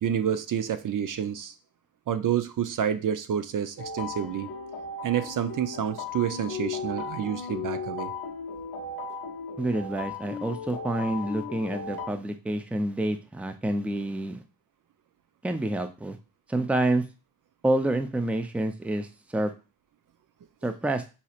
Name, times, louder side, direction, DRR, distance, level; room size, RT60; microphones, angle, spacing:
voice 1, 0.0-1.5 2.1-4.5 5.0-8.1, right 9 dB, 60° right, 9 dB, 0.5 m, -29 dB
sound 1, 3.8-12.1, left 4 dB, 80° left, 0.7 m, -36 dB
voice 2, 9.6-14.4 15.4-16.2 16.5-17.0 17.6-19.5 20.6-21.0, right 1 dB, 5° right, 7 dB, 0.5 m, -28 dB
4.1 x 2.8 x 2.4 m, 0.31 s
cardioid pair, 50°, 37 cm